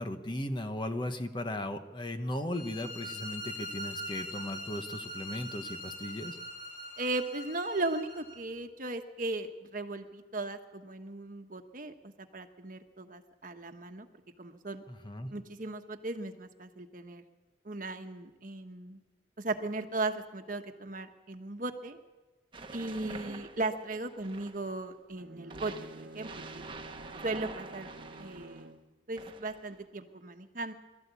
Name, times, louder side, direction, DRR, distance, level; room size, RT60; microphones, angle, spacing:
voice 1, 0.0-6.4 14.9-15.3, left 1 dB, 25° left, 7 dB, 1.1 m, -37 dB
sound 1, 2.5-8.4, equal, 85° left, 5.7 m, -42 dB
voice 2, 7.0-14.1 14.4-14.8 15.3-17.2 17.6-19.0 19.4-22.0 22.7-26.6 27.2-27.9 28.2-28.7 29.1-30.7, right 2 dB, 50° right, 6 dB, 1.3 m, -37 dB
sound 2, 22.5-24.8 25.5-28.6 29.2-29.8, right 3 dB, 30° right, 1.3 m, -46 dB
Bowed string instrument, 25.1-28.9, right 1 dB, 65° right, 1.2 m, -49 dB
22.5 x 13.5 x 8.4 m, 1.2 s
head